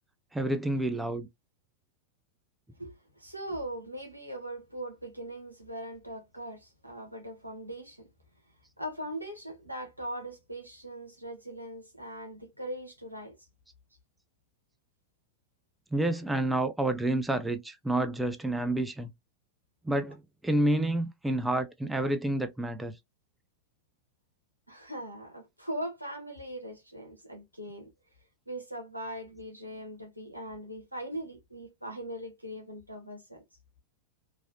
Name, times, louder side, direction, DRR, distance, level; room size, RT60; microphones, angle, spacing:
voice 1, 0.3-1.3 15.9-19.1 19.8-22.9, right 1 dB, 5° right, 0.3 m, -29 dB
voice 2, 2.8-8.1 8.8-13.4 24.7-27.9 28.5-33.4, right 1 dB, 85° right, 1.0 m, -40 dB
3.1 x 2.5 x 2.6 m
figure-of-eight pair, 90°, 0 cm